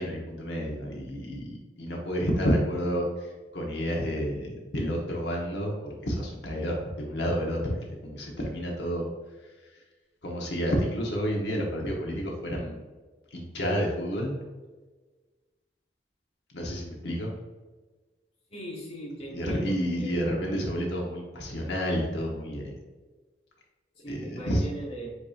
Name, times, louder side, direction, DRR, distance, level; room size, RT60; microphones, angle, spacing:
voice 1, 0.0-9.1 10.2-12.8 13.3-14.4 16.5-17.3 19.3-22.7 24.1-24.6, equal, 80° left, -1 dB, 0.9 m, -30 dB
voice 2, 18.5-19.7 20.0-20.1 24.0-25.1, right 1 dB, 35° left, -3 dB, 1.3 m, -38 dB
8.0 x 2.7 x 2.4 m, 1.3 s
head